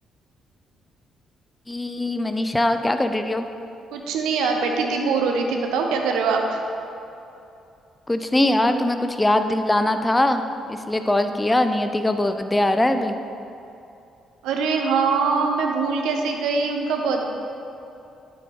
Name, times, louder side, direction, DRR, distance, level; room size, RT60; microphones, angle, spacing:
voice 1, 1.7-3.5 8.1-10.4 10.7-13.2, left 1 dB, 15° left, 8 dB, 0.7 m, -21 dB
voice 2, 3.9-6.6 14.4-17.3, right 4 dB, 65° right, 2 dB, 1.0 m, -23 dB
9.8 x 7.3 x 5.1 m, 2.8 s
figure-of-eight pair, 40°, 0 cm